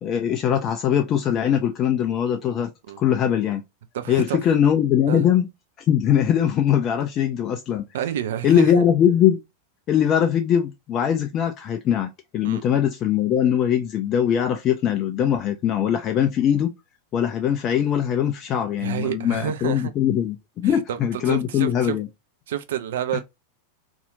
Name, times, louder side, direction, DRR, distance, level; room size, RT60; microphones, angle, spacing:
voice 1, 0.0-2.7 3.0-3.6 4.1-5.5 5.9-7.9 8.4-9.4 9.9-16.7 17.1-22.1, left 9 dB, 30° left, 0.3 m, -21 dB
voice 2, 3.9-4.4 5.1-5.2 7.9-8.9 12.4-12.6 18.8-19.9 20.6-22.0 22.5-23.2, right 10 dB, 60° right, 0.4 m, -29 dB
2.7 x 2.4 x 2.5 m
figure-of-eight pair, 90°, 0 cm